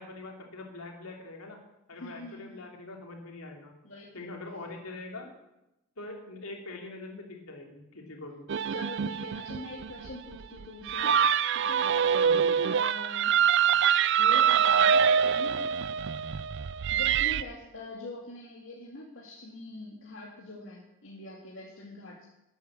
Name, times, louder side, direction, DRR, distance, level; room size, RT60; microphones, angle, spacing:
voice 1, 0.0-1.6 1.9-3.7 4.1-5.3 6.0-8.5 12.2-12.4, left 2 dB, 80° left, 1 dB, 3.0 m, -43 dB
voice 2, 2.0-2.7 3.8-4.1 8.7-11.2 11.5-11.8 12.6-13.3 14.2-15.6 16.9-22.3, left 2 dB, 60° left, -2 dB, 1.9 m, -43 dB
sound 1, 8.5-17.4, right 7 dB, 55° right, 0.4 m, -25 dB
12.5 x 9.0 x 7.4 m, 0.91 s
head